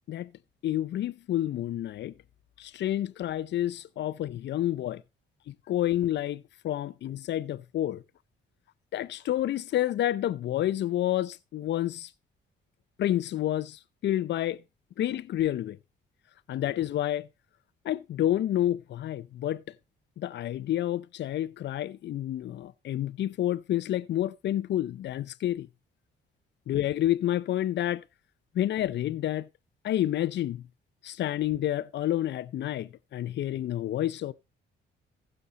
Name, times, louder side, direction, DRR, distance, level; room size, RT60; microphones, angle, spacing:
voice 1, 0.6-2.1 2.6-5.0 5.5-8.0 8.9-12.1 13.0-14.6 15.0-15.8 16.5-17.3 17.8-19.6 20.2-25.7 26.7-28.0 28.5-29.5 29.8-30.6 31.0-34.3, left 12 dB, 65° left, 0.6 m, -29 dB
15.0 x 6.5 x 4.0 m
cardioid pair, 90°, 20 cm